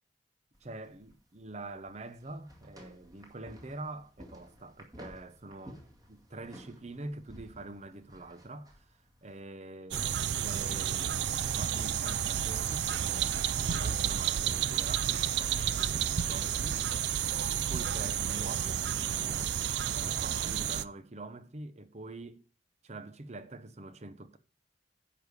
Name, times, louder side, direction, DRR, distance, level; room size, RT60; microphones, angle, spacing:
sound 1, 0.5-9.4, equal, 20° right, 2.0 m, -54 dB
voice 1, 0.6-5.8 6.1-16.9 17.7-19.5 19.9-22.5 22.8-24.4, right 2 dB, 40° right, 0.8 m, -45 dB
sound 2, 9.9-20.8, right 9 dB, 70° right, 0.5 m, -31 dB
10.0 x 4.9 x 6.7 m
head